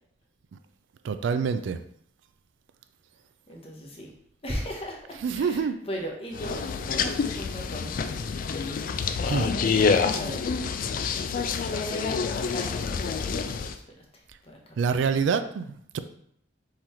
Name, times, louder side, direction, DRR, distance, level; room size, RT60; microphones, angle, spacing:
voice 1, 1.0-1.8 5.2-5.8 9.3-9.5 14.8-16.0, right 5 dB, 70° right, 10 dB, 0.3 m, -26 dB
voice 2, 3.5-4.1 4.4-6.6 6.9-8.1 10.1-10.4 11.6-13.8 14.4-14.6 14.9-15.0, equal, 30° left, 0 dB, 0.9 m, -37 dB
sound 1, 6.3-13.7, left 5 dB, 45° left, 0.3 m, -27 dB
3.8 x 3.1 x 4.3 m, 0.69 s
head